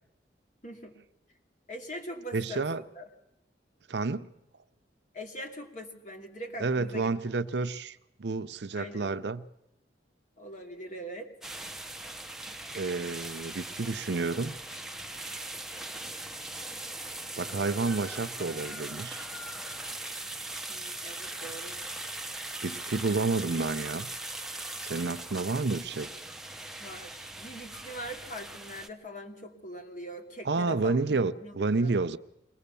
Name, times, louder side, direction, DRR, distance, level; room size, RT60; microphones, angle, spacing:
voice 1, 0.6-1.0 1.7-2.7 2.9-3.1 5.1-7.1 8.7-9.1 10.4-11.3 20.7-21.8 26.8-32.0, equal, 45° left, 2.6 m, -42 dB
voice 2, 2.3-2.8 3.9-4.3 6.6-9.5 12.7-14.6 17.4-19.3 22.6-24.1 24.8-26.1 30.4-32.2, right 3 dB, 70° right, 0.7 m, -30 dB
sound 1, 11.4-28.9, right 2 dB, ahead, 0.8 m, -40 dB
23.5 x 18.0 x 6.9 m
head